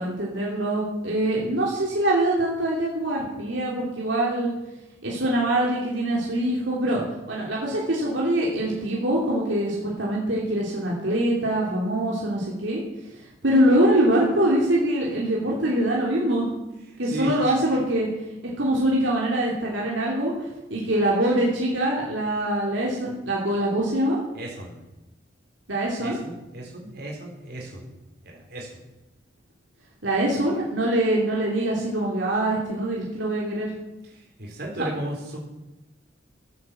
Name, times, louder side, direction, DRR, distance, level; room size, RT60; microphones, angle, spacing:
voice 1, 0.0-4.5 5.0-7.0 7.3-12.8 13.4-16.5 17.0-18.1 18.6-20.3 20.7-24.2 25.7-26.2 30.0-33.7, right 1 dB, 70° right, -4 dB, 3.1 m, -23 dB
voice 2, 17.0-17.4 24.3-24.8 26.0-27.9 28.2-28.8 34.0-35.4, right 1 dB, 50° right, -1 dB, 3.9 m, -35 dB
16.0 x 8.9 x 7.6 m, 1.0 s
head